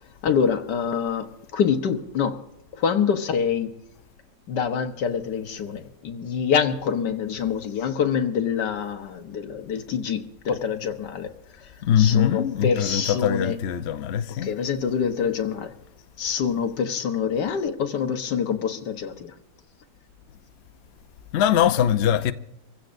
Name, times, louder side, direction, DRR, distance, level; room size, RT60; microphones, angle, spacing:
voice 1, 0.2-2.4 2.7-3.7 4.5-11.3 11.6-11.7 12.0-13.6 14.4-15.7 16.2-19.3, left 7 dB, 65° left, 1.6 m, -26 dB
voice 2, 11.8-14.5 21.3-22.3, left 9 dB, 85° left, 0.5 m, -22 dB
26.0 x 15.5 x 2.6 m
omnidirectional pair, 2.0 m